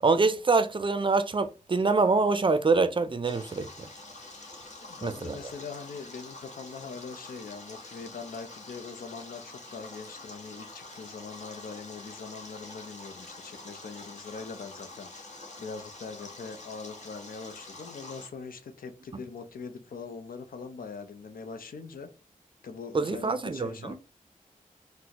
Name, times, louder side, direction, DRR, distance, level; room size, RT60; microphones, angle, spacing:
voice 1, 0.0-3.9 5.0-5.4 22.9-24.0, right 4 dB, 35° right, 0.4 m, -25 dB
Stream, 3.3-18.3, left 2 dB, 55° left, 1.0 m, -46 dB
voice 2, 4.8-15.3 15.6-22.1 22.6-24.0, left 5 dB, 80° left, 0.5 m, -42 dB
4.0 x 2.1 x 2.8 m
cardioid pair, 55°, 14 cm